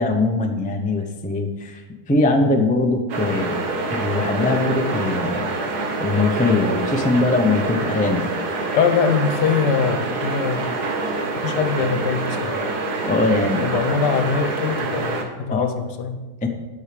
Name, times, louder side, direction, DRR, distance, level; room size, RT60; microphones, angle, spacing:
voice 1, 0.0-1.8 2.1-5.5 6.0-8.3 13.0-13.8 15.5-15.7 16.4-16.5, left 2 dB, 15° left, 3 dB, 0.3 m, -21 dB
sound 1, 3.1-15.2, right 3 dB, 70° right, 1.7 m, -26 dB
voice 2, 8.7-10.8 11.4-12.6 13.6-16.2, left 6 dB, 85° left, 8 dB, 1.5 m, -22 dB
9.9 x 6.3 x 5.1 m, 1.2 s
omnidirectional pair, 1.8 m